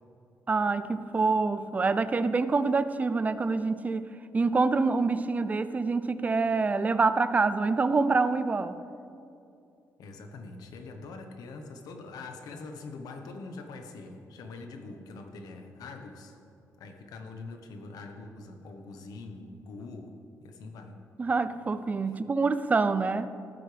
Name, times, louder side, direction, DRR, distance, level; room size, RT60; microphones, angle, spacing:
voice 1, 0.5-4.1 4.3-8.8 21.2-23.3, right 4 dB, 25° right, 13 dB, 0.5 m, -26 dB
voice 2, 10.0-16.4 16.8-20.1 20.4-21.0, left 3 dB, 80° left, 5 dB, 1.2 m, -43 dB
14.5 x 12.0 x 3.4 m, 2.6 s
cardioid pair, 130°, 6 cm